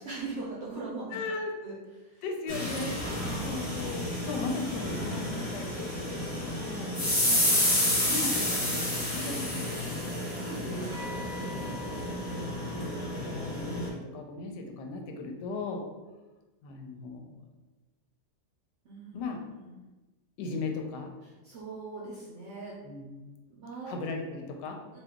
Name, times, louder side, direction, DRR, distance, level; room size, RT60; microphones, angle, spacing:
voice 1, 0.0-1.2 1.6-2.2 3.1-3.6 6.5-6.9 10.1-10.6 11.4-11.6 18.8-19.2 19.6-19.7 21.4-22.8 23.5-23.9 24.9-25.0, right 3 dB, 65° right, -6 dB, 0.7 m, -41 dB
voice 2, 1.1-1.5 2.2-3.1 3.4-7.5 8.1-10.1 10.6-11.2 11.5-12.4 12.7-15.8 16.6-17.4 19.1-19.4 20.4-21.1 22.8-23.3 23.9-24.8, left 3 dB, 85° left, 3 dB, 1.2 m, -38 dB
sound 1, 2.5-13.9, left 1 dB, 30° left, 0.5 m, -30 dB
2.9 x 2.3 x 3.4 m, 1.1 s
omnidirectional pair, 1.8 m